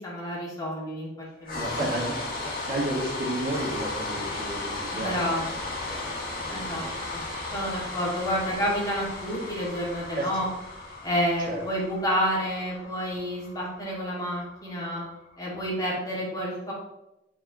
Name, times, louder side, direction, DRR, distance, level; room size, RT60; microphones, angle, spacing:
voice 1, 0.0-2.0 4.9-5.8 6.5-7.2 7.5-10.5 11.0-15.0 15.4-16.7, equal, 20° left, -6 dB, 2.4 m, -30 dB
sound 1, 1.4-15.5, left 2 dB, 50° left, 1.9 m, -35 dB
voice 2, 1.5-5.4 5.9-6.2 6.5-6.9 10.1-10.3 11.4-11.6, right 1 dB, 50° right, -4 dB, 1.9 m, -32 dB
7.9 x 4.5 x 3.1 m, 0.90 s
head